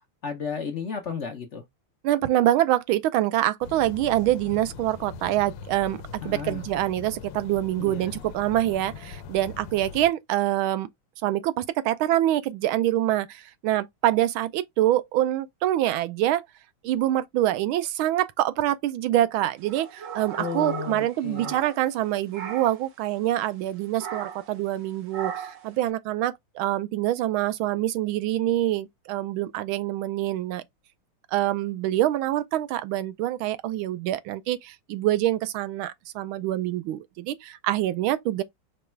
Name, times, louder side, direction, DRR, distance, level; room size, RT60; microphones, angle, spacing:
voice 1, 0.2-1.6 6.2-6.7 7.8-8.2 20.4-21.6, left 6 dB, 60° left, 0.7 m, -33 dB
voice 2, 2.0-10.9 11.2-16.4 16.8-30.6 31.3-38.4, right 13 dB, 80° right, 1.4 m, -25 dB
sound 1, 3.6-10.1, left 5 dB, 85° left, 1.5 m, -41 dB
sound 2, 19.6-22.0 22.3-22.9 24.0-24.5 25.1-25.7, right 7 dB, 60° right, 0.8 m, -36 dB
5.2 x 2.3 x 4.4 m
omnidirectional pair, 2.3 m